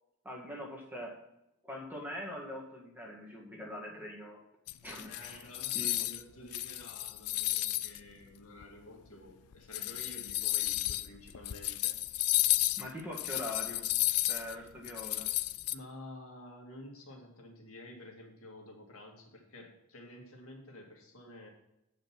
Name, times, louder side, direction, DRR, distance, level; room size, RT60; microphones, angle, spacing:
voice 1, 0.2-1.2 1.6-4.4 4.8-5.5 5.7-6.1 12.8-13.9 14.3-15.3, left 1 dB, 10° right, -1 dB, 1.7 m, -43 dB
sound 1, 4.7-6.2 6.5-8.0 8.6-8.7 9.5-15.7, left 17 dB, 90° left, 0.4 m, -32 dB
voice 2, 5.1-12.0 14.5-14.6 15.7-21.5, left 1 dB, 70° left, 1 dB, 2.1 m, -51 dB
8.9 x 5.3 x 5.9 m, 0.86 s
head